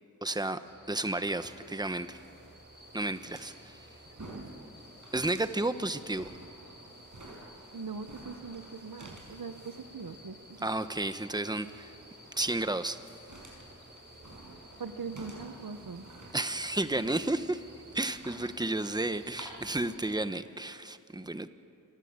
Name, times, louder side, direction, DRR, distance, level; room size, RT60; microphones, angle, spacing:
voice 1, 0.2-0.6 0.9-2.2 2.9-3.8 5.1-6.3 10.6-11.9 12.4-13.0 16.3-17.6 17.9-21.5, right 2 dB, 10° right, 11 dB, 1.1 m, -32 dB
sound 1, 0.6-20.2, equal, 30° right, 4.0 m, -54 dB
sound 2, 1.3-19.4, right 2 dB, 60° right, 6.0 m, -52 dB
voice 2, 7.7-10.7 14.8-16.1, right 5 dB, 90° right, 10 dB, 1.1 m, -41 dB
28.0 x 21.0 x 8.9 m, 2.5 s
wide cardioid pair, 65°, 33 cm